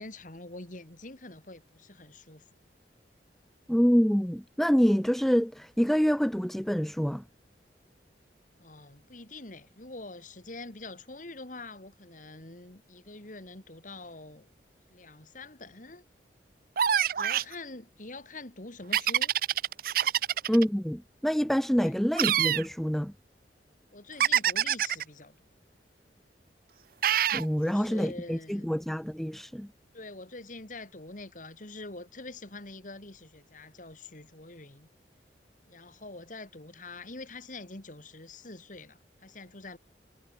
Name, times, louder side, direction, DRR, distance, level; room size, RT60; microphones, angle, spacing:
voice 1, 0.0-2.4 8.6-14.5 14.9-16.0 17.2-19.3 21.8-21.9 23.9-25.4 27.6-28.7 29.9-34.9 35.7-39.8, left 2 dB, 50° left, 2.6 m, -45 dB
voice 2, 3.7-7.2 20.5-23.1 27.3-29.7, equal, ahead, 0.4 m, -26 dB
sound 1, 16.8-17.5 18.9-20.6 22.2-22.7 24.2-25.0 27.0-27.5, right 10 dB, 55° right, 0.5 m, -25 dB
head